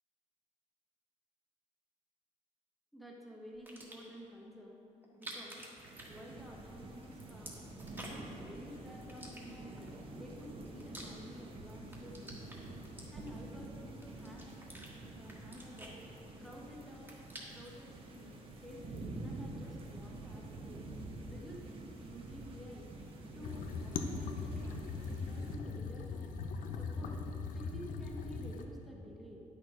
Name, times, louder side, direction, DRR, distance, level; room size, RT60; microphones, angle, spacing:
voice 1, 2.9-4.8 5.1-5.7 6.1-7.7 8.1-14.6 15.1-17.1 17.5-20.9 21.3-22.9 23.3-26.4 26.7-27.2 27.5-29.4, equal, ahead, -3 dB, 1.3 m, -51 dB
sound 1, 3.5-4.2 5.0-6.7 7.0-8.4 9.1-9.9 10.4-11.5 11.8-13.5 14.0-14.9 15.2-16.6 16.9-17.8, right 1 dB, 15° right, 1.5 m, -50 dB
sound 2, 5.8-25.6, right 2 dB, 40° right, 1.1 m, -48 dB
sound 3, 23.4-28.7, left 4 dB, 80° left, 0.7 m, -40 dB
10.0 x 6.6 x 5.0 m, 3.0 s
cardioid pair, 145°, 14 cm